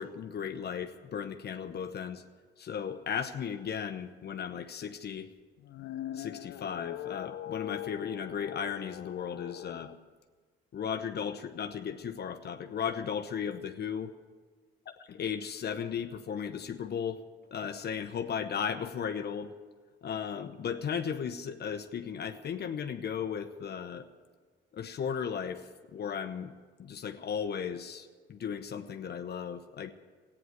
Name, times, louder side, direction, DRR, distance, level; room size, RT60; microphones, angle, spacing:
voice 1, 0.0-2.2 2.6-5.3 6.1-9.9 10.7-14.1 15.1-17.2 17.5-19.5 20.0-24.1 24.7-26.5 26.8-29.9, left 7 dB, 55° left, 7 dB, 1.0 m, -36 dB
sound 1, 5.6-10.0, left 13 dB, 75° left, 0.5 m, -42 dB
15.0 x 9.7 x 9.5 m, 1.5 s
cardioid pair, 90°, 20 cm